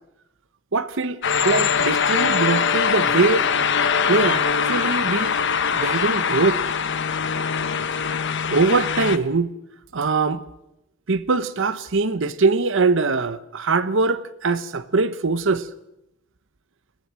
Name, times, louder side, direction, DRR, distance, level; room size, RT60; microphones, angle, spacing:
voice 1, 0.7-1.2 1.4-3.5 4.1-5.3 5.7-6.6 8.5-9.5 9.9-10.4 11.1-15.7, right 3 dB, 65° right, 0.9 m, -22 dB
sound 1, 1.2-9.2, left 6 dB, 60° left, 1.1 m, -22 dB
21.5 x 16.0 x 7.6 m
head